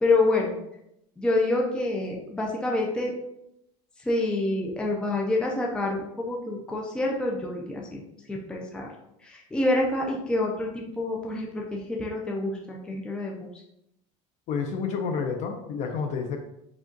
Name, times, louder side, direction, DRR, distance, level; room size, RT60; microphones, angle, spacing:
voice 1, 0.0-0.5 1.2-3.1 4.1-8.0 8.3-8.9 9.2-13.5, left 2 dB, 5° left, -1 dB, 0.5 m, -27 dB
voice 2, 14.5-16.4, left 5 dB, 45° left, 5 dB, 0.6 m, -29 dB
5.0 x 2.4 x 3.8 m, 0.80 s
cardioid pair, 155°, 17 cm